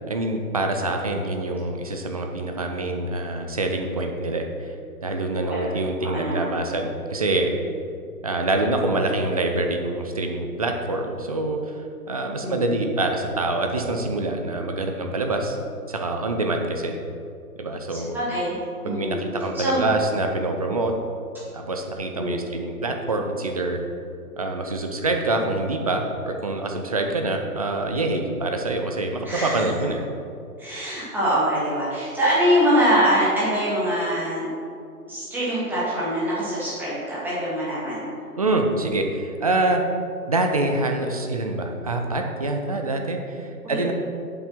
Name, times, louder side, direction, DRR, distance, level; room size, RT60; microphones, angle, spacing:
voice 1, 0.1-4.8 5.0-7.5 8.2-15.6 15.9-16.9 17.6-18.1 18.8-20.9 21.5-23.8 24.4-30.1 38.4-39.8 40.3-43.9, right 2 dB, 25° right, 3 dB, 0.5 m, -25 dB
voice 2, 6.0-6.6 12.4-12.8 17.9-18.6 18.8-19.3 19.5-19.9 22.1-22.5 29.2-29.6 30.6-34.5 35.1-38.2 43.6-43.9, equal, 5° right, -9 dB, 2.0 m, -24 dB
7.7 x 5.8 x 6.0 m, 2.5 s
figure-of-eight pair, 130°, 46 cm